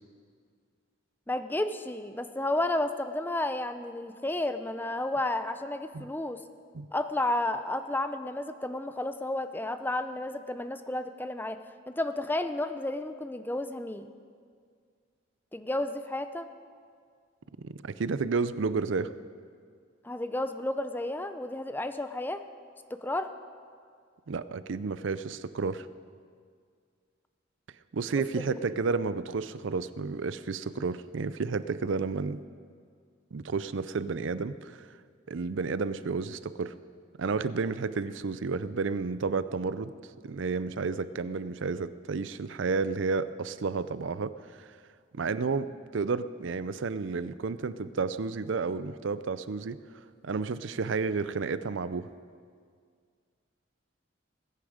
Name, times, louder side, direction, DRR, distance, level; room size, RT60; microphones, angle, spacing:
voice 1, 1.3-6.4 6.9-11.6 11.9-14.1 15.5-16.5 20.0-22.4 22.9-23.3 28.5-28.6, left 1 dB, 10° left, 10 dB, 0.5 m, -32 dB
voice 2, 17.6-19.1 24.3-25.9 27.9-32.4 33.3-34.9 35.3-36.7 37.2-39.9 40.2-44.3 44.6-44.7 45.1-49.8 50.2-52.1, right 4 dB, 70° right, 14 dB, 0.5 m, -31 dB
20.5 x 10.0 x 5.0 m, 2.1 s
head